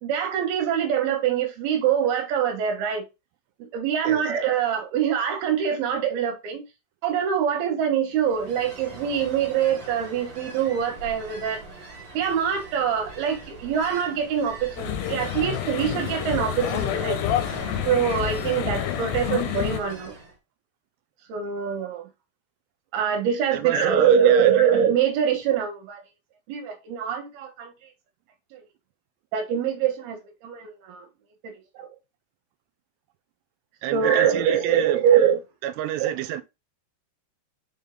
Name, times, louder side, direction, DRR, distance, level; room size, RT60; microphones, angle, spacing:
voice 1, 0.0-3.0 3.7-6.6 7.0-11.6 12.1-17.2 17.9-20.1 21.3-22.1 22.9-26.0 26.5-27.7 28.5-28.6 29.3-31.1 31.4-31.9 33.9-35.4 36.0-36.1, right 8 dB, 70° right, 3.1 m, -24 dB
Ocean, 8.2-20.3, right 2 dB, 35° right, 2.6 m, -40 dB
sound 1, 14.8-19.8, left 11 dB, 90° left, 2.8 m, -28 dB
voice 2, 23.5-24.5 33.8-35.0 35.6-36.4, right 11 dB, 90° right, 2.8 m, -29 dB
5.6 x 5.5 x 3.6 m
omnidirectional pair, 4.8 m